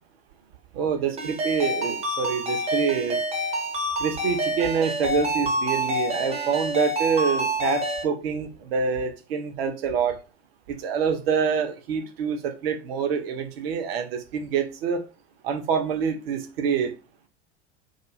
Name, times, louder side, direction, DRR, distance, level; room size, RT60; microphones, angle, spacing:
voice 1, 0.7-3.2 4.0-10.2 10.7-15.0 15.4-16.9, right 6 dB, 55° right, 0.7 m, -26 dB
Ringtone, 1.2-8.0, equal, 15° right, 0.6 m, -27 dB
2.3 x 2.3 x 3.0 m
figure-of-eight pair, 85°, 36 cm